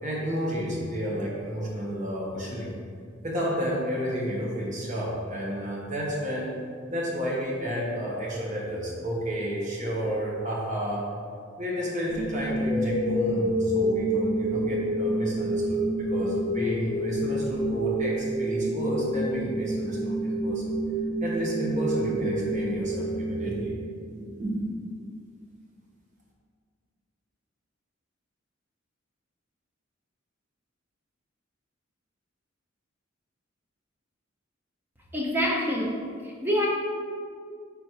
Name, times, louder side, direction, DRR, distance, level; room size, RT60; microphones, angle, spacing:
voice 1, 0.0-2.7 3.2-6.5 6.9-11.1 11.6-20.7 21.2-23.7 24.1-24.6, equal, 40° right, -4 dB, 1.2 m, -31 dB
sound 1, 12.1-24.1, right 1 dB, 90° right, 1.2 m, -28 dB
voice 2, 35.1-36.7, equal, 10° right, -2 dB, 0.7 m, -27 dB
5.4 x 4.2 x 4.6 m, 2.2 s
head